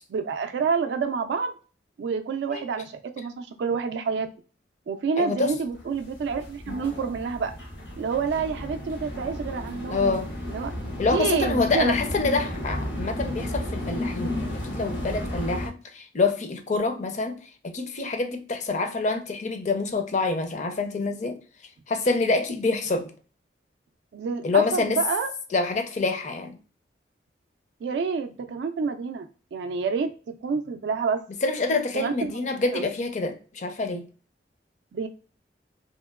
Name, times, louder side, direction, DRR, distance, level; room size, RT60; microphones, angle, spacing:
voice 1, 0.1-1.5 2.0-4.3 4.9-7.6 8.0-10.7 11.1-12.0 24.1-25.3 27.8-30.1 30.4-31.2 31.9-32.9 34.9-35.1, right 5 dB, 70° right, 0.3 m, -28 dB
voice 2, 5.2-5.5 6.7-6.8 9.9-10.3 11.0-17.3 17.6-21.4 21.9-23.1 24.4-25.0 25.5-26.6 31.4-34.1, left 3 dB, 40° left, 0.5 m, -26 dB
sound 1, 5.7-15.7, left 1 dB, 75° left, 1.0 m, -33 dB
2.9 x 2.8 x 2.2 m
head